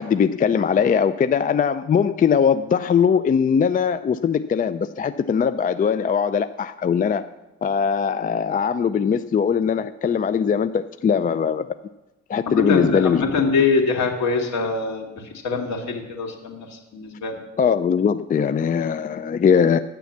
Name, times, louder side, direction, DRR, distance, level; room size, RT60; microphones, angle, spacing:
voice 1, 0.0-7.3 7.6-11.7 12.3-13.2 17.6-19.8, left 7 dB, 30° left, 11 dB, 0.4 m, -20 dB
voice 2, 12.5-15.1 15.4-17.4, left 4 dB, 65° left, 1 dB, 2.3 m, -23 dB
9.3 x 6.8 x 7.2 m, 1.0 s
cardioid pair, 90°, 30 cm